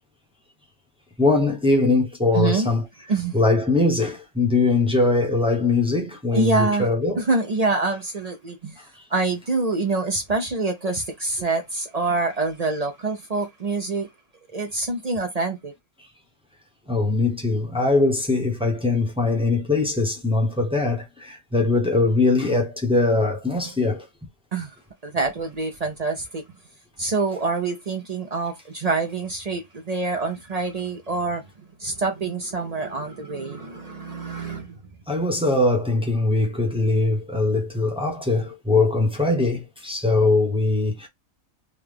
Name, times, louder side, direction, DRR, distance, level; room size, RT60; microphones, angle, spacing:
voice 1, 1.2-2.8 3.3-7.3 8.9-9.0 16.9-24.0 35.1-41.1, left 3 dB, 5° right, 0.9 m, -21 dB
voice 2, 2.3-2.7 3.1-3.4 6.3-6.9 7.2-8.8 9.1-14.1 14.5-15.7 24.5-24.7 25.0-26.4 27.0-31.4 31.8-34.8, right 3 dB, 50° right, 0.4 m, -26 dB
3.8 x 2.3 x 3.4 m
omnidirectional pair, 1.5 m